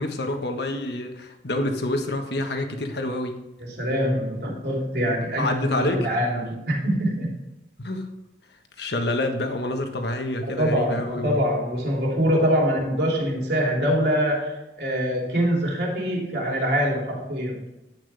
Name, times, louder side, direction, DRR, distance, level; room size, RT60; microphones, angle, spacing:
voice 1, 0.0-3.4 4.9-5.0 5.4-6.1 7.8-8.1 8.8-11.4, left 1 dB, 70° left, 5 dB, 1.4 m, -27 dB
voice 2, 3.6-7.4 10.6-17.6, equal, 70° right, -2 dB, 3.3 m, -24 dB
10.5 x 8.7 x 3.5 m, 0.98 s
head